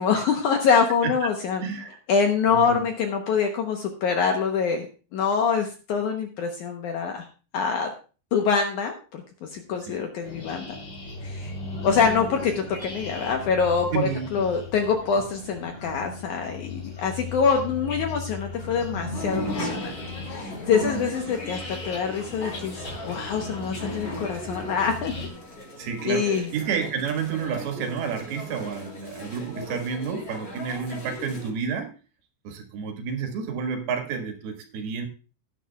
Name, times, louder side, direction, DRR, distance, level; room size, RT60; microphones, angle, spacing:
voice 1, 0.0-1.6 2.1-4.9 5.1-7.3 7.5-7.9 8.3-10.8 11.2-11.5 11.8-20.0 20.3-25.2 26.0-26.5, left 6 dB, 80° left, 4 dB, 1.8 m, -25 dB
voice 2, 1.6-2.0 2.5-2.8 9.9-10.0 13.9-14.3 25.8-31.9 32.5-35.1, right 6 dB, 75° right, 4 dB, 3.6 m, -30 dB
sound 1, 10.2-25.3, left 3 dB, 45° left, 4.5 m, -37 dB
sound 2, 19.1-31.5, left 1 dB, 25° left, 3.9 m, -37 dB
17.0 x 9.8 x 2.3 m, 0.35 s
omnidirectional pair, 4.7 m